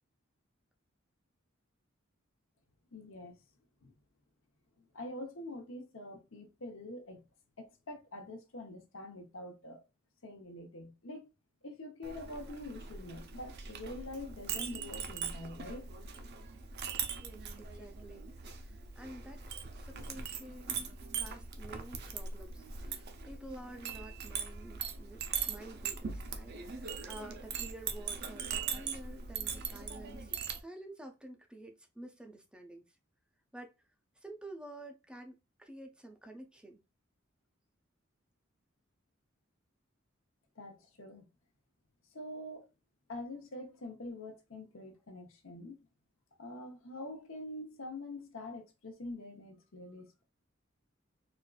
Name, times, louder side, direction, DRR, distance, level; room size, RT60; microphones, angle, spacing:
voice 1, 2.9-3.4 3.8-3.9 4.9-7.2 7.6-9.8 10.2-11.3 11.6-15.9 40.6-41.3 42.1-42.7 43.1-45.8 46.4-50.2, left 1 dB, 75° left, 0.9 m, -45 dB
Chink clink, 12.0-30.6, right 6 dB, 55° right, 0.6 m, -41 dB
voice 2, 17.2-19.4 19.7-20.9 21.2-30.3 30.6-32.9 33.5-33.7 34.2-36.8, right 1 dB, 5° right, 0.5 m, -50 dB
4.2 x 2.5 x 2.3 m
head